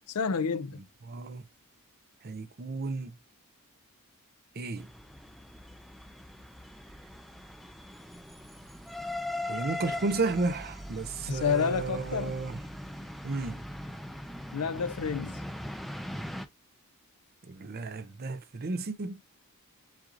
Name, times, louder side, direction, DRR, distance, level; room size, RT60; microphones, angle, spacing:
voice 1, 0.1-0.8 11.3-12.4 14.5-15.4, left 6 dB, 80° left, 0.5 m, -29 dB
voice 2, 1.1-1.4 2.2-3.2 4.6-4.9 9.4-12.6 13.2-13.6 17.5-19.2, right 3 dB, 45° right, 0.5 m, -33 dB
sound 1, 4.8-16.5, left 1 dB, ahead, 0.6 m, -40 dB
7.5 x 2.7 x 2.5 m
head